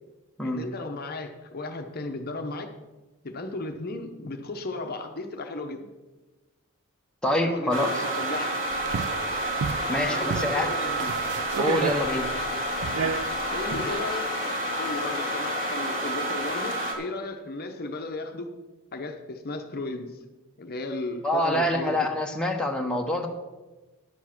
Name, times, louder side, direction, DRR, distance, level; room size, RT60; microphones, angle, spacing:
voice 1, 0.4-2.7 3.2-5.9 7.3-8.5 10.0-11.2 13.5-14.3 14.8-18.5 18.9-20.2 20.6-22.1, left 2 dB, 45° left, 6 dB, 0.8 m, -35 dB
voice 2, 7.2-8.0 9.9-10.7 11.6-12.3 21.2-23.3, left 1 dB, 5° left, 1 dB, 1.0 m, -26 dB
sound 1, 7.7-16.9, right 1 dB, 60° right, 2.0 m, -29 dB
sound 2, 8.7-14.1, right 6 dB, 80° right, 0.4 m, -32 dB
10.5 x 7.1 x 5.9 m, 1.2 s
head